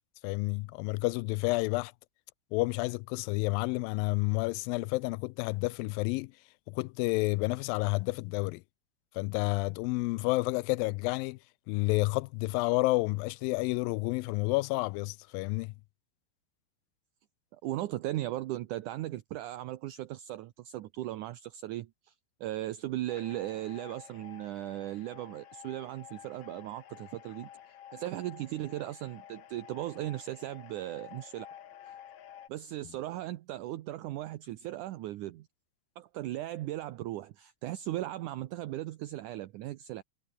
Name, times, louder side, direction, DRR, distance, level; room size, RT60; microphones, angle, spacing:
voice 1, 0.2-1.9 2.5-6.3 6.7-8.6 9.2-11.4 11.7-15.7, left 23 dB, 90° left, 2.3 m, -30 dB
voice 2, 17.5-22.1 22.4-27.5 27.9-31.5 32.5-35.5 36.0-40.0, right 15 dB, 70° right, 2.2 m, -37 dB
sound 1, 23.1-32.5, left 10 dB, 60° left, 2.7 m, -51 dB
omnidirectional pair, 4.0 m